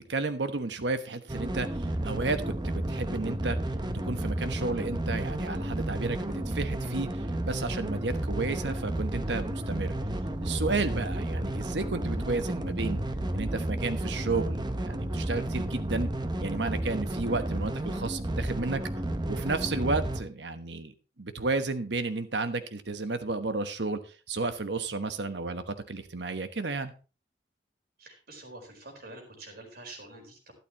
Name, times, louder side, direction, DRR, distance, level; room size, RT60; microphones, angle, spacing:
voice 1, 0.1-3.6 4.0-10.0 10.4-13.0 13.3-16.1 16.4-18.8 19.3-20.9 21.2-24.0 24.3-26.9, right 3 dB, 75° right, 9 dB, 1.2 m, -32 dB
sound 1, 1.3-20.2, right 1 dB, 25° right, 0.9 m, -32 dB
voice 2, 28.0-30.5, right 2 dB, 60° right, 3 dB, 4.2 m, -47 dB
12.5 x 11.5 x 3.1 m, 0.33 s
head